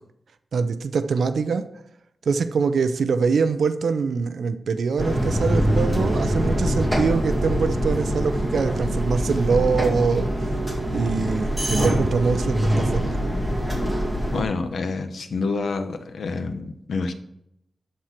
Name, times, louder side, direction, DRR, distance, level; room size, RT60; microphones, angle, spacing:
voice 1, 0.5-1.7 2.3-10.3 10.9-13.2, right 5 dB, 90° right, 0.6 m, -23 dB
sound 1, 5.0-14.4, equal, ahead, 2.2 m, -24 dB
voice 2, 14.3-17.1, left 4 dB, 85° left, 1.0 m, -28 dB
12.5 x 4.4 x 5.9 m
wide cardioid pair, 150°, 0 cm